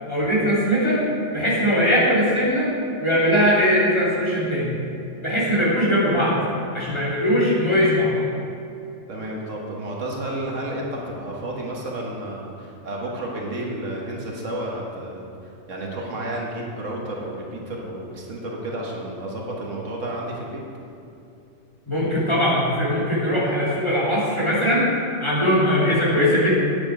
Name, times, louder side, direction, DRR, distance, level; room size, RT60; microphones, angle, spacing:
voice 1, 0.1-1.0 1.3-2.7 3.0-4.7 5.2-6.4 6.7-8.3 21.9-24.8 25.2-26.6, equal, 20° left, -7 dB, 2.6 m, -20 dB
voice 2, 9.1-20.6, right 1 dB, 80° right, -2 dB, 1.8 m, -31 dB
9.0 x 8.7 x 4.8 m, 2.7 s
omnidirectional pair, 1.3 m